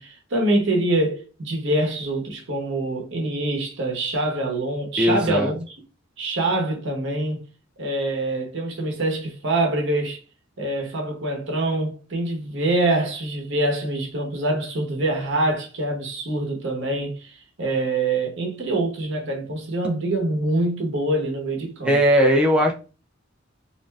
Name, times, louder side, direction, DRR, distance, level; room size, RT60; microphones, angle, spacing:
voice 1, 0.0-5.6 6.2-7.4 7.8-10.2 10.6-22.0, right 2 dB, 65° right, 0.8 m, -25 dB
voice 2, 5.0-5.5 21.8-22.7, equal, 5° right, 0.3 m, -18 dB
2.5 x 2.1 x 3.2 m
head